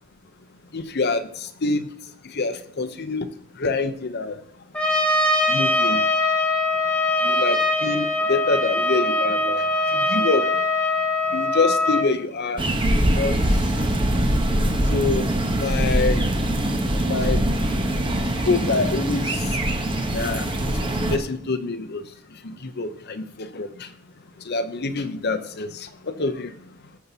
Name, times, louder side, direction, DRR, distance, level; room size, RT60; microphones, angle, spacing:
voice 1, 0.7-1.9 2.2-3.3 3.6-4.4 5.5-6.0 7.2-9.6 9.9-10.5 11.3-12.6 13.1-13.4 14.9-15.3 15.6-16.2 17.0-17.4 18.3-19.4 20.1-20.5 21.1-22.0 22.4-23.9 24.5-26.5, left 3 dB, 45° left, 9 dB, 0.7 m, -26 dB
Trumpet, 4.7-12.1, left 2 dB, 5° left, 1.3 m, -22 dB
sound 1, 12.6-21.2, right 1 dB, 25° right, 0.9 m, -22 dB
19.0 x 6.8 x 2.8 m, 0.69 s
head